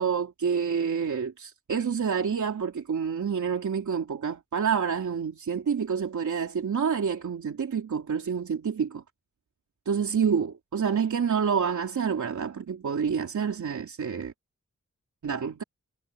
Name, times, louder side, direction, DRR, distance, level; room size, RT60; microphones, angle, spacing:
voice 1, 0.0-9.0 9.8-14.3 15.2-15.6, right 6 dB, 90° right, 3.4 m, -28 dB
wide cardioid pair, 95°, 29 cm